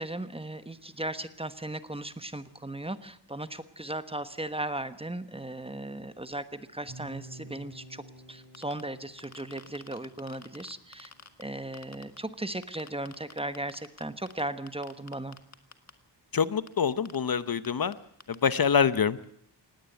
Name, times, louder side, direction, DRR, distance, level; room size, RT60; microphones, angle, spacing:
voice 1, 0.0-8.0 8.3-11.1 11.4-15.4, right 1 dB, 15° right, 11 dB, 1.2 m, -37 dB
sound 1, 6.9-11.0, right 2 dB, 45° right, 5.2 m, -50 dB
sound 2, 8.4-8.8 9.2-11.4 11.7-12.2 12.6-14.4 14.7-15.9 16.7-16.8 17.1-17.2 17.6-17.7 17.9-18.0 18.2-18.5, left 4 dB, 35° left, 1.8 m, -47 dB
voice 2, 16.3-17.9 18.3-19.3, left 6 dB, 55° left, 15 dB, 0.9 m, -25 dB
19.0 x 17.5 x 9.3 m, 0.66 s
wide cardioid pair, 110°, 43 cm